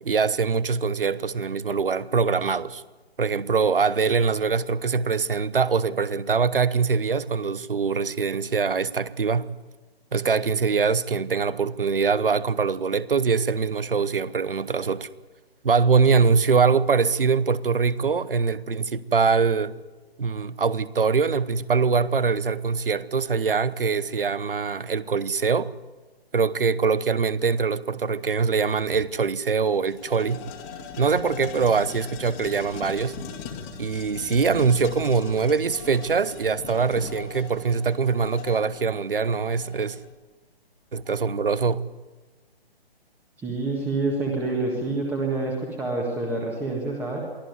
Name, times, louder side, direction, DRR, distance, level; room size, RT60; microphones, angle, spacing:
voice 1, 0.0-2.8 3.2-9.5 10.1-15.1 15.6-19.7 20.2-25.7 26.3-30.4 31.0-33.2 33.8-40.0 40.9-41.8, right 5 dB, 60° right, 1.0 m, -23 dB
sound 1, 29.0-29.1 29.4-40.1, left 6 dB, 15° left, 2.0 m, -40 dB
voice 2, 43.4-47.2, right 3 dB, 5° right, 1.7 m, -27 dB
23.5 x 14.5 x 9.4 m
figure-of-eight pair, 140°, 31 cm